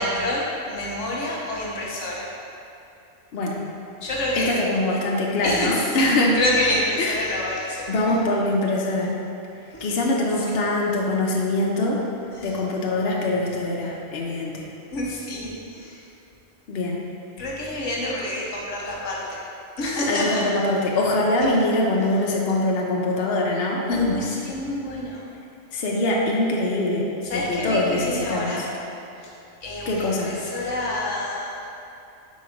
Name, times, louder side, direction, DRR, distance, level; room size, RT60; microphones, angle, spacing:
voice 1, 0.0-2.2 4.0-4.5 5.4-6.1 6.3-7.8 8.1-8.2 9.7-9.8 12.4-12.6 14.9-16.0 17.4-19.2 19.8-20.4 23.9-25.3 27.2-28.7 29.6-31.6, left 1 dB, 85° left, -4 dB, 1.3 m, -28 dB
voice 2, 4.4-6.4 7.0-7.3 7.9-9.1 9.8-12.0 12.4-14.6 16.7-17.0 20.1-24.2 25.7-27.1 27.3-28.7 29.9-30.4, left 2 dB, 60° left, -2 dB, 0.8 m, -23 dB
4.6 x 4.2 x 5.1 m, 2.8 s
omnidirectional pair, 1.2 m